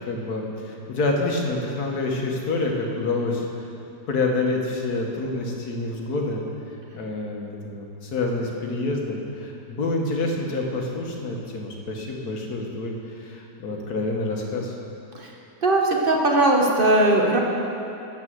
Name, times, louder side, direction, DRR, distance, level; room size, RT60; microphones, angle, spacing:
voice 1, 0.1-3.7 4.1-6.4 6.9-14.8, left 2 dB, 65° left, 0 dB, 1.7 m, -27 dB
voice 2, 15.6-17.4, right 2 dB, 40° right, 0 dB, 0.9 m, -19 dB
12.5 x 4.8 x 7.9 m, 2.8 s
omnidirectional pair, 1.8 m